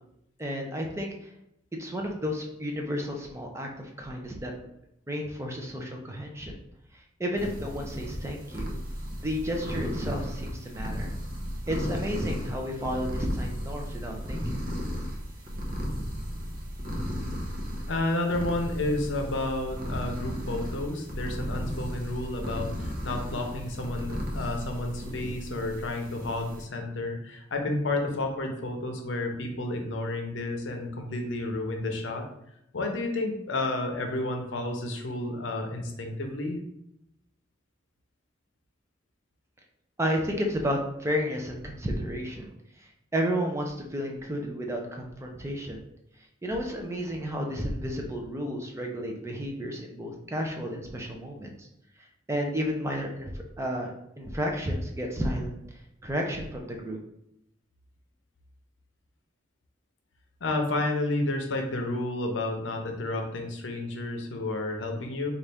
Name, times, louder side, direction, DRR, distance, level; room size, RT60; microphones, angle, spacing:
voice 1, 0.4-1.3 1.8-4.5 5.1-6.5 7.2-8.8 9.2-11.1 11.7-14.6 40.0-42.5 43.1-45.8 46.4-51.7 52.3-55.6 56.0-57.0, equal, 15° right, 1 dB, 0.5 m, -32 dB
sound 1, 7.4-26.6, equal, 50° right, 0.8 m, -35 dB
voice 2, 17.9-32.3 32.7-36.6 60.4-65.3, left 2 dB, 70° left, 3 dB, 0.7 m, -31 dB
4.1 x 2.4 x 3.4 m, 0.80 s
head